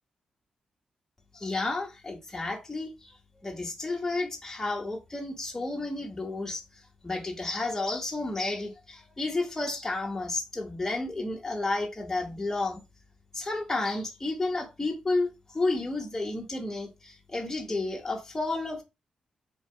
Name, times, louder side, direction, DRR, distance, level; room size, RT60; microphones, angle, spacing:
voice 1, 1.3-2.9 3.4-6.6 7.0-12.8 13.3-18.8, left 2 dB, 20° left, 1.3 m, -31 dB
3.9 x 2.8 x 4.4 m
cardioid pair, 85°, 2 cm